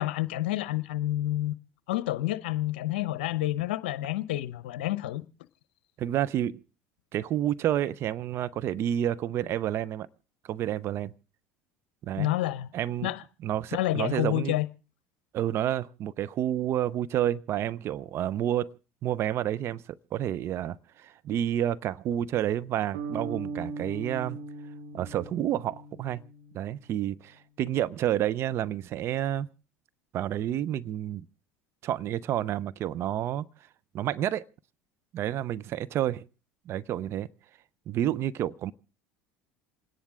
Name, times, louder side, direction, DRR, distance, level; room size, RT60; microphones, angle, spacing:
voice 1, 0.0-1.5 1.9-5.2 12.2-12.7 13.0-13.2 13.7-14.7, left 15 dB, 80° left, 0.7 m, -29 dB
voice 2, 6.0-6.6 7.1-10.1 10.5-11.1 12.0-12.3 12.7-13.1 13.4-14.5 15.3-18.7 19.0-19.8 20.1-24.4 24.9-26.2 26.5-29.5 30.1-31.3 31.8-33.5 33.9-34.5 35.1-36.2 36.7-37.3 37.9-38.7, right 11 dB, 50° right, 0.6 m, -29 dB
sound 1, 22.9-26.9, right 4 dB, 80° right, 4.0 m, -39 dB
27.5 x 10.0 x 3.7 m
hypercardioid pair, 80°, 6 cm